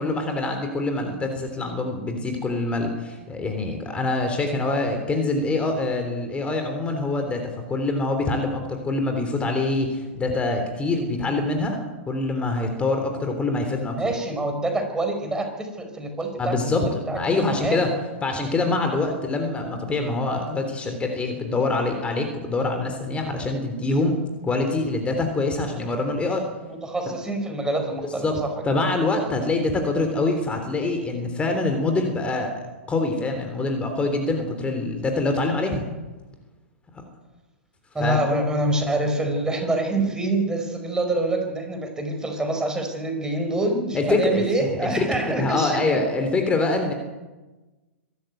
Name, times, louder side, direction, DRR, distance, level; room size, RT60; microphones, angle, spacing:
voice 1, 0.0-11.8 12.1-14.0 16.4-17.9 18.2-24.2 24.4-26.5 28.2-28.4 28.6-32.5 32.9-35.9 38.0-38.4 43.9-46.9, left 2 dB, 15° left, 5 dB, 3.4 m, -25 dB
voice 2, 14.0-16.8 17.1-18.0 26.8-28.8 37.9-46.0, right 2 dB, 10° right, 4 dB, 4.6 m, -26 dB
24.5 x 13.0 x 9.2 m, 1.2 s
hypercardioid pair, 115°, 7 cm